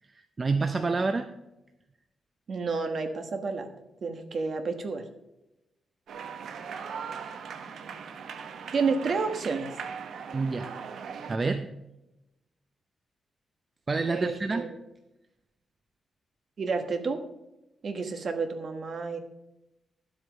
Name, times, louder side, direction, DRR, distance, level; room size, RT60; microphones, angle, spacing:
voice 1, 0.1-1.3 10.3-10.8 11.3-11.7 13.9-14.7, right 3 dB, 25° right, 7 dB, 0.5 m, -28 dB
voice 2, 2.5-3.7 4.0-5.0 8.7-9.7 14.1-14.7 16.6-17.2 17.8-19.2, right 4 dB, 45° right, 6 dB, 1.4 m, -30 dB
sound 1, 6.1-11.4, right 6 dB, 70° right, 0.9 m, -39 dB
11.5 x 7.9 x 5.2 m, 0.93 s
wide cardioid pair, 165°, 0 cm